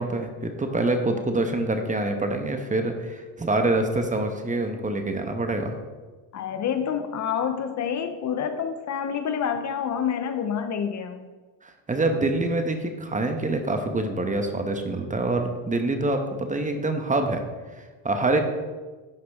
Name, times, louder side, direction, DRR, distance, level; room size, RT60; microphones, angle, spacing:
voice 1, 0.0-5.8 11.6-17.4 17.7-18.4, right 2 dB, 20° right, 6 dB, 1.0 m, -26 dB
voice 2, 6.3-11.3, left 7 dB, 45° left, 8 dB, 0.7 m, -28 dB
11.5 x 4.8 x 3.6 m, 1.3 s
supercardioid pair, 95°, 40 cm